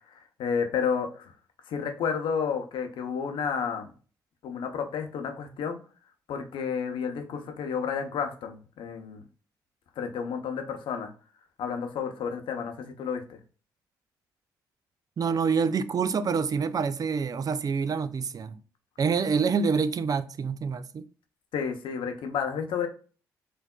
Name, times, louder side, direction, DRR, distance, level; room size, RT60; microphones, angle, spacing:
voice 1, 0.4-1.3 1.7-3.9 4.4-5.8 6.3-9.2 10.0-11.1 11.6-13.4 21.5-22.9, left 6 dB, 75° left, 0.7 m, -31 dB
voice 2, 15.2-18.6 19.0-21.0, right 5 dB, 45° right, 0.4 m, -27 dB
4.5 x 2.6 x 2.3 m
supercardioid pair, 55°, 9 cm